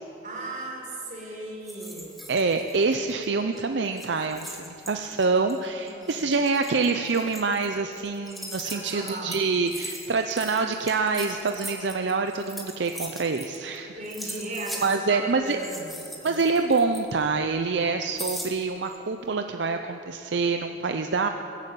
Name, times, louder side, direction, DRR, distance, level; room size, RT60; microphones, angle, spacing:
voice 1, 0.2-2.2 5.8-6.3 8.6-9.4 14.0-16.4, right 2 dB, 45° right, -2 dB, 4.1 m, -36 dB
sound 1, 1.6-3.3 3.5-3.6 3.9-13.8 14.0-14.9 15.4-17.4 18.2-19.0, equal, ahead, 1.7 m, -40 dB
voice 2, 2.3-14.0 14.8-15.6 16.2-21.3, right 4 dB, 75° right, 6 dB, 0.6 m, -26 dB
20.5 x 8.3 x 8.4 m, 2.9 s
head